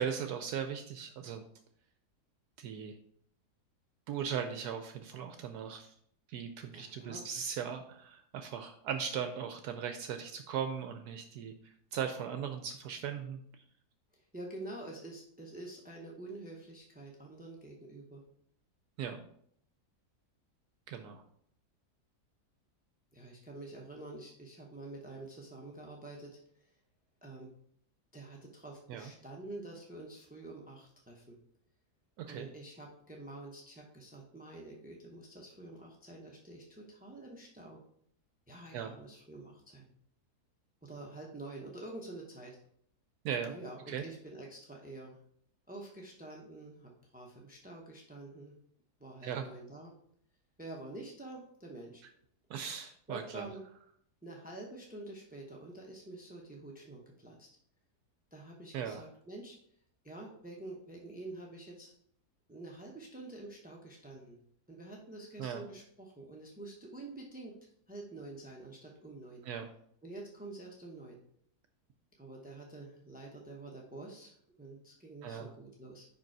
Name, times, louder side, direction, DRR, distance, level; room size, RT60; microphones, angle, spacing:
voice 1, 0.0-1.4 2.6-3.0 4.1-5.9 6.3-13.4 19.0-19.2 20.9-21.2 28.9-29.1 32.2-32.5 38.7-38.9 43.2-43.5 43.9-44.0 49.2-49.5 52.5-53.5 58.7-59.0 65.4-65.6 69.4-69.7 75.2-75.5, right 8 dB, 75° right, 7 dB, 1.1 m, -38 dB
voice 2, 6.7-7.2 14.1-18.2 23.1-26.8 27.2-27.5 28.1-31.4 32.2-37.8 38.5-39.9 40.8-42.6 43.5-45.2 45.7-48.5 49.0-49.9 50.6-52.0 53.1-53.6 54.2-57.5 58.3-59.6 60.0-61.9 62.5-64.4 64.7-69.4 70.0-71.2 72.2-76.1, right 2 dB, 10° right, -1 dB, 0.5 m, -48 dB
5.3 x 5.1 x 4.6 m, 0.66 s
omnidirectional pair, 1.7 m